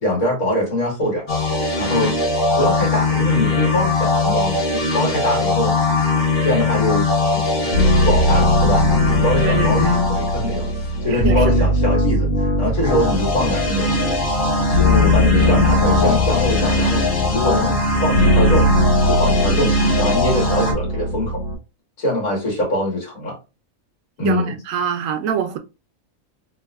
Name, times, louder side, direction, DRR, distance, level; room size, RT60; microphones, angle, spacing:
voice 1, 0.0-1.3 1.8-2.2 2.6-5.8 6.4-7.7 8.1-8.9 9.1-10.7 11.0-12.3 12.6-13.9 14.4-17.0 17.3-18.7 19.1-21.4 22.0-23.4 24.2-24.5, left 1 dB, 70° left, 1.9 m, -23 dB
sound 1, 1.3-11.3 12.7-20.7, left 2 dB, 40° left, 0.9 m, -20 dB
sound 2, 7.7-21.5, left 1 dB, 85° left, 1.6 m, -20 dB
voice 2, 9.4-10.0 11.1-11.7 24.3-25.6, right 8 dB, 75° right, 1.0 m, -25 dB
3.5 x 2.6 x 2.2 m
omnidirectional pair, 1.5 m